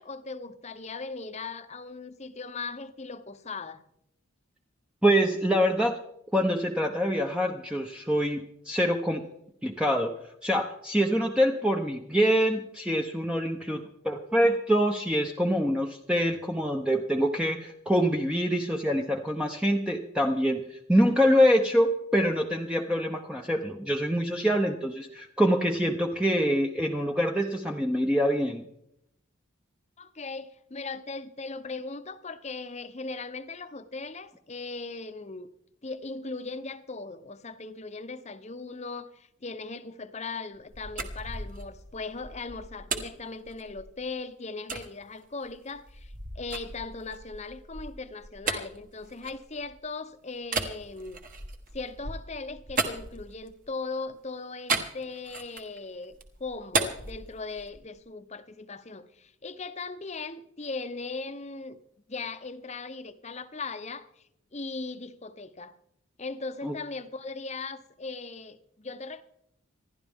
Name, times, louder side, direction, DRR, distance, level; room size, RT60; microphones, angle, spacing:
voice 1, 0.0-3.8 30.0-35.5 35.8-51.2 51.7-61.8 62.1-64.1 64.5-65.7 66.2-69.2, left 3 dB, 30° left, 0.7 m, -38 dB
voice 2, 5.0-6.0 6.3-9.2 9.6-10.1 10.4-28.6 66.6-66.8, equal, 5° right, 0.7 m, -25 dB
sound 1, 40.5-44.1 44.7-44.9 45.4-49.9 50.4-53.7 54.7-55.8 56.1-57.9, right 4 dB, 40° right, 1.4 m, -35 dB
27.0 x 11.5 x 3.6 m
head